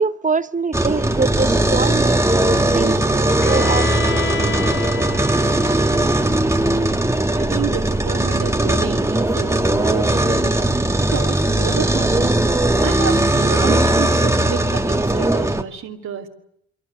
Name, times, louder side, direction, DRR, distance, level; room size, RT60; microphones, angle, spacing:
voice 1, 0.0-4.2, right 4 dB, 25° right, 1.0 m, -24 dB
sound 1, 0.7-15.6, right 1 dB, 10° right, 2.0 m, -18 dB
Bowed string instrument, 3.4-7.3, left 5 dB, 40° left, 1.5 m, -30 dB
voice 2, 7.3-10.6 11.0-12.3 12.8-16.3, right 8 dB, 65° right, 2.9 m, -29 dB
30.0 x 23.0 x 8.1 m
cardioid pair, 90°, 30 cm